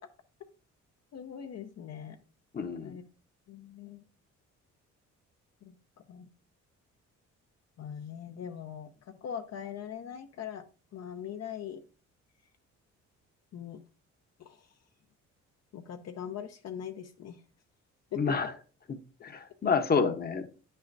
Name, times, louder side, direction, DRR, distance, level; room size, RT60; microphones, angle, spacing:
voice 1, 1.1-2.2 2.8-3.0 3.5-4.0 5.6-5.7 6.1-6.3 7.8-10.6 10.9-11.8 13.5-13.8 14.4-14.7 15.7-17.4 18.1-18.3, left 9 dB, 60° left, 6 dB, 0.7 m, -41 dB
voice 2, 2.5-3.0 18.2-18.5 19.2-20.5, left 5 dB, 30° left, 8 dB, 0.9 m, -28 dB
9.2 x 5.6 x 2.6 m, 0.37 s
cardioid pair, 90°, 30 cm